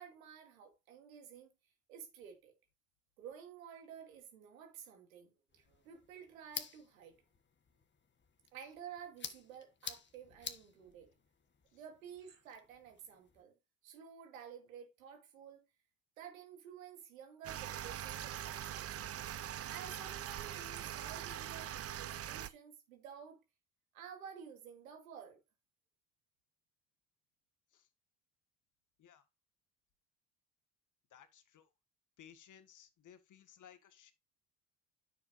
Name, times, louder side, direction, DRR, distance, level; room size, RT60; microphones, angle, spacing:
voice 1, 0.0-1.5 1.9-2.5 3.2-7.2 8.5-11.1 11.7-13.5 13.8-15.7 16.2-19.1 19.7-23.4 23.9-25.4, right 7 dB, 85° right, 2.5 m, -52 dB
sound 1, 5.5-13.4, left 6 dB, 25° left, 1.4 m, -51 dB
sound 2, 17.4-22.5, right 11 dB, 35° right, 0.6 m, -42 dB
voice 2, 31.1-31.7 32.2-34.1, left 9 dB, 50° left, 1.7 m, -59 dB
9.8 x 6.9 x 2.6 m
hypercardioid pair, 70°, 40 cm